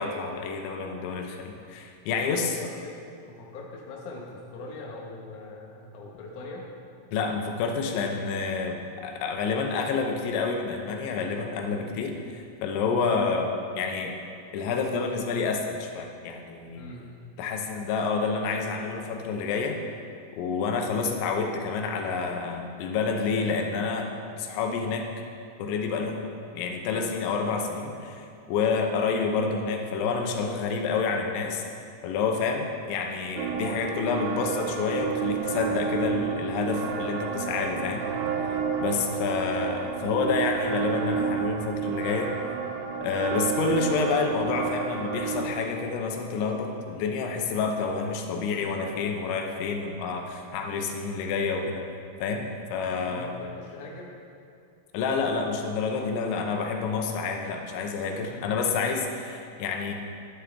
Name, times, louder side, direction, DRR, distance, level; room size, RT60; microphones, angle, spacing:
voice 1, 0.0-2.6 7.1-13.5 13.7-14.2 14.5-16.9 17.4-19.8 20.4-25.1 25.6-26.2 26.5-31.6 32.0-38.0 38.5-42.3 43.0-51.8 52.2-53.3 54.9-59.9, left 5 dB, 90° left, 3 dB, 3.3 m, -28 dB
voice 2, 2.2-3.0 3.3-6.7 16.7-17.1 38.7-39.0 53.1-54.2 58.2-58.5, left 2 dB, 60° left, -3 dB, 2.4 m, -42 dB
sound 1, 33.4-45.4, right 7 dB, 85° right, 2.0 m, -30 dB
11.5 x 11.5 x 3.5 m, 2.5 s
omnidirectional pair, 5.2 m